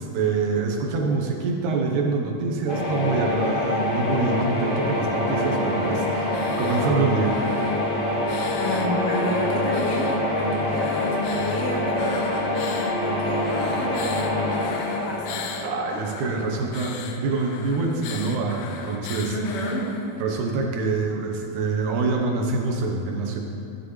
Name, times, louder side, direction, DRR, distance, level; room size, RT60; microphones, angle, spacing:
voice 1, 0.0-7.4 15.6-19.4 20.2-23.4, right 3 dB, 85° right, 1 dB, 2.5 m, -25 dB
sound 1, 2.7-16.5, left 1 dB, 35° left, 3.2 m, -25 dB
sound 2, 5.2-7.0 7.2-10.2 10.7-13.0 13.3-20.2, left 7 dB, 85° left, 2.0 m, -39 dB
voice 2, 8.6-12.6 13.0-15.5 19.3-19.9, left 1 dB, 60° left, -2 dB, 1.9 m, -30 dB
12.5 x 11.0 x 3.2 m, 2.6 s
omnidirectional pair, 3.4 m